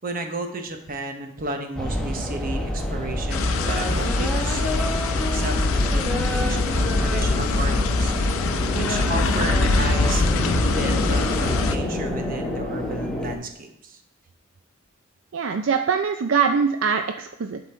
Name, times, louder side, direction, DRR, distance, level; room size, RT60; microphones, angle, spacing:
voice 1, 0.0-4.9 5.3-8.1 8.7-14.0, right 2 dB, 40° right, 5 dB, 0.9 m, -33 dB
sound 1, 1.8-13.4, left 1 dB, 5° left, 0.9 m, -28 dB
sound 2, 3.3-11.8, left 3 dB, 90° left, 0.6 m, -23 dB
voice 2, 15.3-17.6, right 6 dB, 65° right, 6 dB, 0.4 m, -23 dB
11.0 x 3.9 x 4.3 m, 0.79 s
head